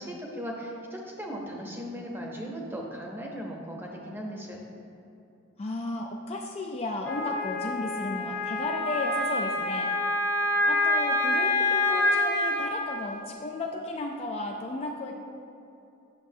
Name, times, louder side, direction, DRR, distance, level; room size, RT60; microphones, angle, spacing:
voice 1, 0.0-4.6, equal, 10° right, -1 dB, 0.7 m, -37 dB
voice 2, 5.6-10.1 10.7-15.2, left 2 dB, 30° left, 2 dB, 0.3 m, -34 dB
Wind instrument woodwind instrument, 7.0-12.7, left 2 dB, 75° left, 1.4 m, -26 dB
8.7 x 6.2 x 2.7 m, 2.8 s
head